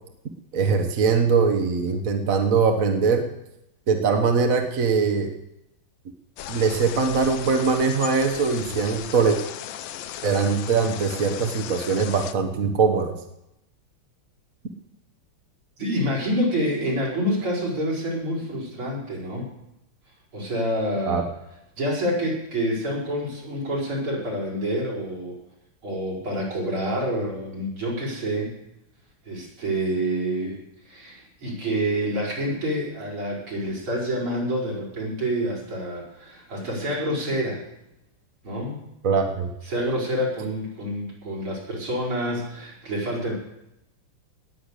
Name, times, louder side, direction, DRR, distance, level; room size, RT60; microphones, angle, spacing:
voice 1, 0.5-3.3 3.9-5.3 6.5-9.4 10.2-13.1 21.0-21.2 39.0-39.5, right 5 dB, 45° right, 5 dB, 1.5 m, -22 dB
sound 1, 6.4-12.3, left 11 dB, 70° left, 1.4 m, -36 dB
voice 2, 15.8-19.5 20.3-21.2 21.8-25.4 25.8-28.5 29.3-37.6 38.4-38.8 39.7-43.3, equal, 75° right, -4 dB, 5.9 m, -27 dB
19.0 x 6.7 x 8.3 m, 0.85 s
omnidirectional pair, 2.4 m